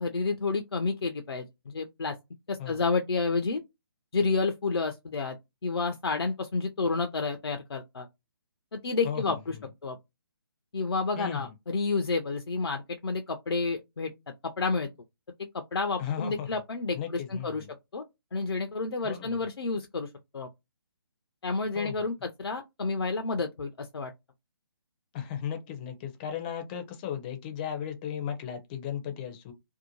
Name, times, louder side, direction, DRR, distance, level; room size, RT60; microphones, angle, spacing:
voice 1, 0.0-2.2 2.5-3.6 4.1-5.4 5.6-8.1 8.7-9.6 9.8-10.0 10.7-14.1 14.4-14.9 15.5-17.6 17.9-18.0 18.3-20.5 21.4-24.1, left 4 dB, 80° left, 0.5 m, -30 dB
voice 2, 9.0-9.4 11.2-11.5 16.0-16.5 16.9-17.7 19.0-19.4 21.7-22.1 25.1-29.5, left 8 dB, 20° left, 0.5 m, -36 dB
2.6 x 2.1 x 2.9 m
figure-of-eight pair, 145°, 13 cm